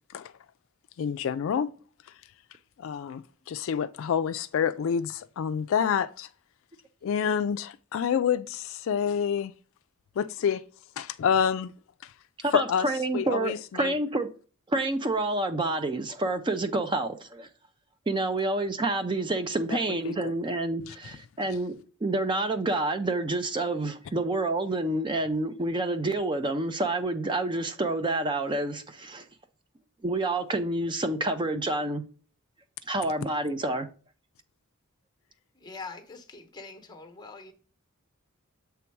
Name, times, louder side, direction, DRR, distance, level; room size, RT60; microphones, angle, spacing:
voice 1, 1.0-1.7 2.1-2.2 2.8-6.3 7.0-9.5 10.2-10.6 11.0-11.7 12.0-12.1 12.5-12.9 13.1-13.9 19.7-19.8 20.0-20.3 20.9-21.0, left 7 dB, 65° left, 0.3 m, -28 dB
voice 2, 12.4-14.3 14.7-17.5 18.1-21.7 22.0-29.3 30.0-32.0 32.9-33.9, right 2 dB, 20° right, 0.4 m, -28 dB
voice 3, 35.5-37.5, left 4 dB, 20° left, 0.9 m, -43 dB
7.2 x 3.5 x 4.5 m
head